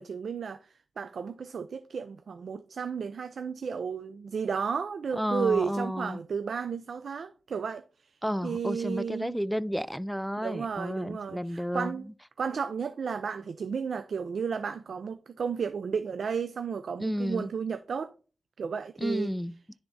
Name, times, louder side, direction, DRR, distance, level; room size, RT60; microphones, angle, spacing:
voice 1, 0.0-7.8 8.4-9.4 10.4-12.1 12.4-18.1 18.6-19.3, right 6 dB, 85° right, 0.4 m, -33 dB
voice 2, 5.2-6.2 8.2-12.0 17.0-17.5 19.0-19.6, equal, ahead, 0.3 m, -31 dB
10.0 x 3.5 x 4.0 m
wide cardioid pair, 100°, 0 cm